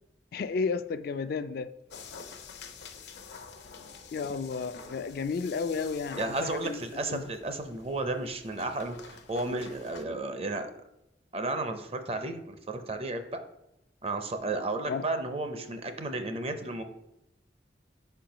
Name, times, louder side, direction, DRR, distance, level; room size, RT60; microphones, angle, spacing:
voice 1, 0.3-1.7 4.1-7.2 14.9-15.0, left 5 dB, 55° left, 0.3 m, -32 dB
sound 1, 1.9-10.0, left 5 dB, 80° left, 0.7 m, -48 dB
voice 2, 6.2-10.7 11.3-13.4 14.0-16.8, right 2 dB, 35° right, 0.6 m, -33 dB
5.3 x 4.5 x 5.0 m
head